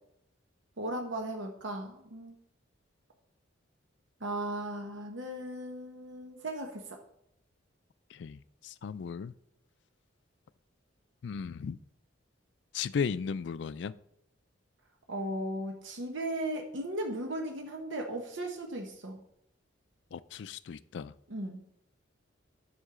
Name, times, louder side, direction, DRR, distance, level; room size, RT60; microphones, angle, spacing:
voice 1, 0.8-2.4 4.2-7.0 15.1-19.2 21.3-21.6, right 1 dB, 75° right, 3 dB, 1.0 m, -36 dB
voice 2, 8.1-9.3 11.2-11.8 12.7-13.9 20.1-21.1, left 6 dB, 65° left, 17 dB, 0.3 m, -36 dB
9.6 x 6.3 x 3.7 m, 0.77 s
head